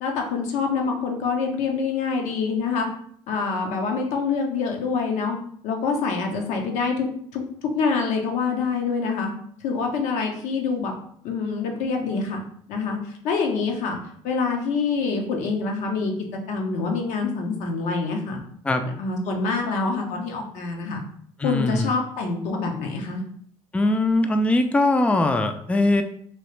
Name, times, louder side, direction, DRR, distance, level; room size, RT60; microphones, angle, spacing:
voice 1, 0.0-2.9 3.3-5.4 5.6-9.3 9.6-10.9 11.2-12.4 12.7-13.0 13.2-14.0 14.2-16.1 16.5-18.4 19.0-21.0 21.4-23.2, left 4 dB, 80° left, 2 dB, 0.8 m, -26 dB
voice 2, 21.4-21.9 23.7-26.0, left 2 dB, 10° left, 7 dB, 0.3 m, -21 dB
3.0 x 2.8 x 3.1 m, 0.64 s
supercardioid pair, 90°, 12 cm